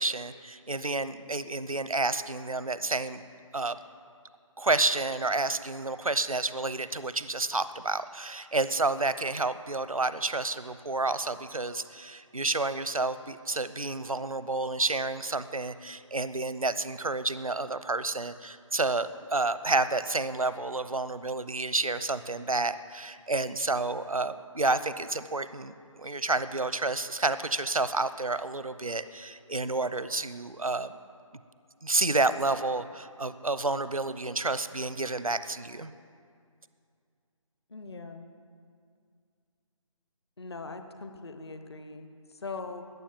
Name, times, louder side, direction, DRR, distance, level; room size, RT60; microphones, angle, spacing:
voice 1, 0.0-3.2 3.5-3.8 4.6-30.9 31.8-35.9, right 2 dB, 85° right, 14 dB, 0.7 m, -30 dB
voice 2, 37.7-38.3 40.4-42.8, left 3 dB, 50° left, 7 dB, 1.0 m, -41 dB
13.5 x 9.8 x 7.3 m, 2.3 s
figure-of-eight pair, 150°, 18 cm